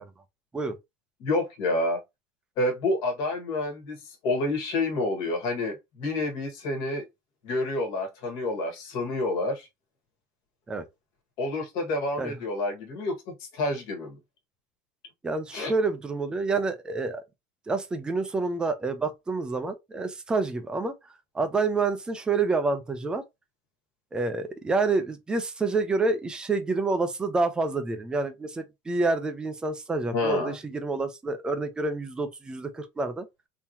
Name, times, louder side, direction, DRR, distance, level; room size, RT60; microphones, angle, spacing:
voice 1, 1.2-2.0 2.6-4.0 4.2-7.0 7.4-9.7 11.4-14.2 15.5-15.7 30.1-30.5, left 2 dB, 50° left, 1.6 m, -28 dB
voice 2, 15.2-17.2 17.7-21.0 21.3-23.2 24.1-33.3, right 3 dB, 10° right, 0.5 m, -28 dB
3.7 x 2.9 x 2.7 m
cardioid pair, 170°, 9 cm